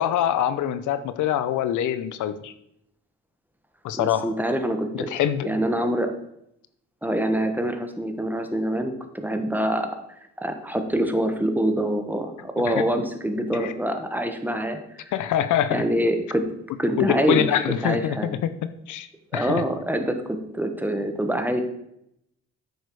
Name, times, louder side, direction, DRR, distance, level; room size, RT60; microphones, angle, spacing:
voice 1, 0.0-2.5 3.8-4.3 4.9-5.5 13.6-13.7 15.1-15.8 17.0-18.5 18.9-19.1 19.3-19.6, left 10 dB, 80° left, 13 dB, 0.7 m, -24 dB
voice 2, 4.0-5.1 5.4-6.1 7.0-9.9 10.4-15.1 15.7-16.5 16.8-18.3 19.3-21.6, right 1 dB, 5° right, 6 dB, 1.4 m, -25 dB
9.5 x 6.5 x 4.7 m, 0.78 s
cardioid pair, 90°, 30 cm